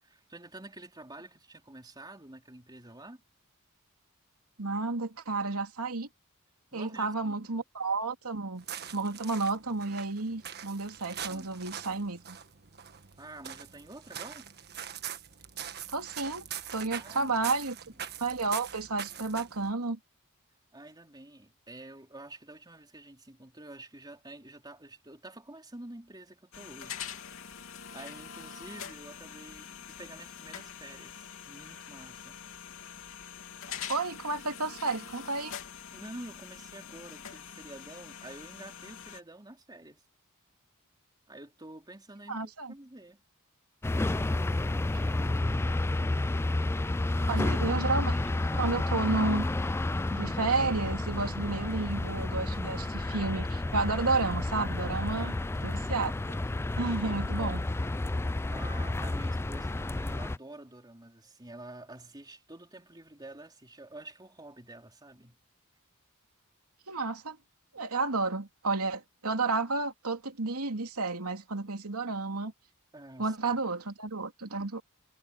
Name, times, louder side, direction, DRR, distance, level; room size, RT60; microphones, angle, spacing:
voice 1, 0.0-3.2 6.7-7.6 11.2-11.6 13.2-14.5 16.9-17.6 17.9-18.0 20.7-27.1 27.9-32.4 35.9-40.0 41.3-43.2 44.9-45.7 47.2-47.4 48.5-48.9 55.1-55.6 57.4-57.9 58.5-65.4 72.9-73.4, right 2 dB, 20° right, 3.8 m, -48 dB
voice 2, 4.6-6.1 6.7-8.6 8.9-12.4 15.9-16.4 16.7-17.7 18.2-20.0 33.9-35.5 42.3-42.7 46.0-46.1 47.3-48.2 48.6-49.4 50.1-55.3 55.6-56.1 56.8-57.6 66.9-67.4 67.7-72.5 73.2-74.8, right 3 dB, 90° right, 2.9 m, -31 dB
sound 1, 8.6-19.7, right 9 dB, 50° right, 1.5 m, -43 dB
sound 2, 26.5-39.2, left 8 dB, 70° left, 3.1 m, -44 dB
sound 3, 43.8-60.4, left 2 dB, 10° left, 0.3 m, -31 dB
head